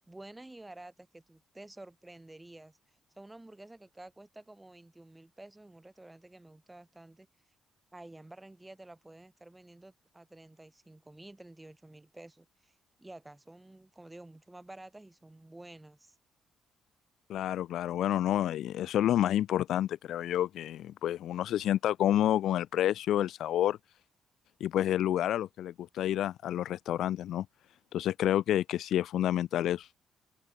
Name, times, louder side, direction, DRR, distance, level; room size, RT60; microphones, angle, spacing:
voice 1, 0.0-2.8 3.1-7.3 7.9-16.1, right 2 dB, 15° right, 6.8 m, -51 dB
voice 2, 17.3-23.8 24.6-27.5 27.9-29.9, left 12 dB, 75° left, 0.5 m, -29 dB
cardioid pair, 90°, 0 cm